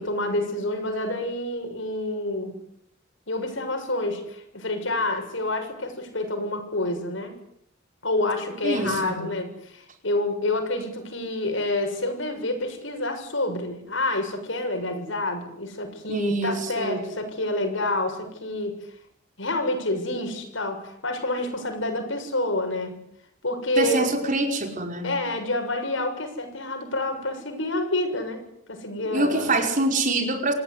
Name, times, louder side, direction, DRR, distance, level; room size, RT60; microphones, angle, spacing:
voice 1, 0.0-2.6 3.3-7.4 8.0-18.9 19.4-23.0 23.4-24.1 25.0-28.4 28.7-29.6, left 2 dB, 75° left, 6 dB, 7.2 m, -28 dB
voice 2, 8.6-9.2 16.1-17.0 23.8-25.1 29.1-30.5, right 2 dB, 40° right, 4 dB, 5.3 m, -25 dB
28.0 x 18.0 x 9.9 m, 0.72 s
head